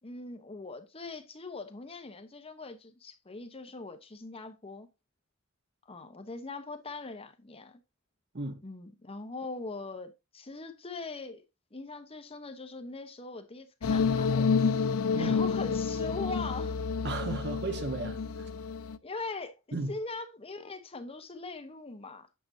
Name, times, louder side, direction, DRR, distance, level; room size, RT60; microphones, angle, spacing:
voice 1, 0.0-4.9 5.9-7.8 8.6-11.4 11.7-14.5 15.2-16.8 19.0-19.6 19.9-22.3, left 3 dB, 30° left, 0.9 m, -41 dB
sound 1, 13.8-19.0, left 5 dB, 85° left, 0.5 m, -29 dB
voice 2, 17.0-18.5 19.7-19.9, right 2 dB, 55° right, 1.2 m, -35 dB
8.6 x 6.7 x 2.7 m
head